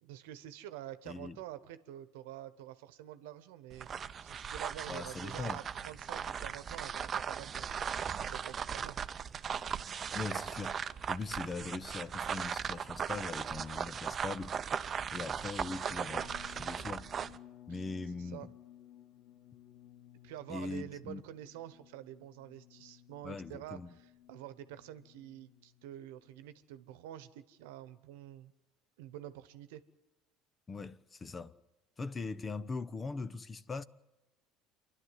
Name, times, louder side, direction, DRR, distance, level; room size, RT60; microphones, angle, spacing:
voice 1, 0.0-3.9 4.2-9.0 17.7-17.8 18.2-18.5 20.2-28.5 29.0-29.8, right 12 dB, 80° right, 1.1 m, -48 dB
voice 2, 1.1-1.4 4.9-5.6 10.1-10.8 11.1-14.6 15.1-17.1 17.7-18.5 20.5-21.2 23.2-23.9 30.7-31.5 32.0-33.8, left 4 dB, 25° left, 0.8 m, -41 dB
sound 1, 3.7-17.4, right 7 dB, 40° right, 0.7 m, -38 dB
sound 2, 15.6-26.6, left 11 dB, 80° left, 1.3 m, -57 dB
27.5 x 11.5 x 9.5 m
hypercardioid pair, 80°, 0 cm